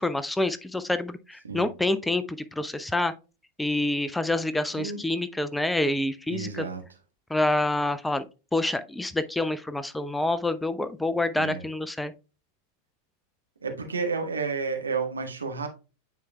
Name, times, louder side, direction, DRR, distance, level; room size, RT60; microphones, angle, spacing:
voice 1, 0.0-3.1 3.6-6.6 7.3-8.3 8.5-12.1, left 2 dB, 5° left, 0.4 m, -27 dB
voice 2, 6.3-6.8 11.4-11.6 13.6-15.7, right 5 dB, 75° right, 1.3 m, -31 dB
9.3 x 4.5 x 2.2 m
figure-of-eight pair, 90°, 0 cm